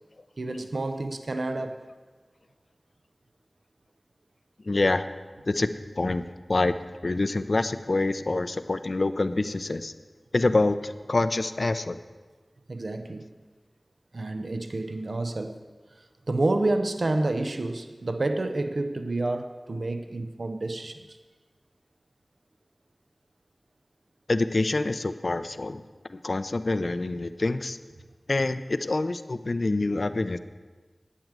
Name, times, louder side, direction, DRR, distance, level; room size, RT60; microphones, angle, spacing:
voice 1, 0.4-1.9 12.7-13.3 14.1-15.7 16.0-21.2, right 2 dB, 75° right, 8 dB, 0.7 m, -29 dB
voice 2, 4.6-5.1 5.5-6.8 7.0-9.9 10.3-12.0 24.3-25.8 26.1-27.8 28.3-30.4, left 2 dB, 65° left, 11 dB, 0.6 m, -26 dB
11.0 x 8.9 x 7.5 m, 1.3 s
wide cardioid pair, 40°, 0 cm